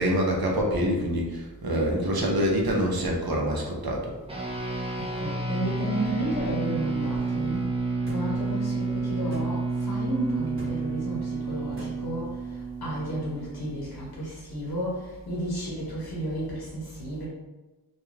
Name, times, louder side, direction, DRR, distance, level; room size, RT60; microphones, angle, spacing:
voice 1, 0.0-4.1, equal, 70° right, -1 dB, 0.7 m, -26 dB
sound 1, 4.3-13.9, right 3 dB, 15° right, 0.4 m, -30 dB
voice 2, 5.0-7.6 8.1-9.6 9.9-11.2 11.5-12.2 12.8-14.9 15.3-17.3, right 1 dB, 70° left, -6 dB, 0.7 m, -32 dB
sound 2, 8.1-8.2 9.3-9.5 10.6-10.7 11.8-11.9, left 1 dB, 30° right, 0.9 m, -39 dB
2.3 x 2.2 x 3.1 m, 1.2 s
wide cardioid pair, 70°, 39 cm